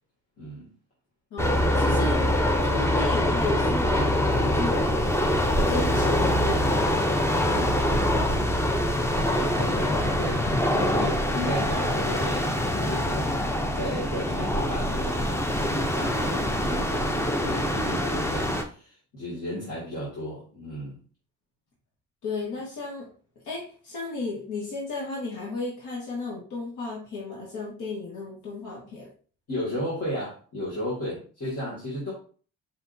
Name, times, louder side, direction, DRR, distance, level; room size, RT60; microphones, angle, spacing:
voice 1, 0.4-0.7 7.4-8.5 9.3-10.5 10.7-13.3 13.7-21.0 29.5-32.1, equal, 55° left, -8 dB, 2.3 m, -34 dB
voice 2, 1.3-2.3 2.6-4.8 5.7-6.7 22.2-23.1 23.4-29.1, left 2 dB, 75° left, -4 dB, 1.7 m, -33 dB
sound 1, 1.4-18.6, left 1 dB, 10° left, 0.6 m, -24 dB
5.0 x 3.4 x 2.7 m, 0.41 s
cardioid pair, 90°, 30 cm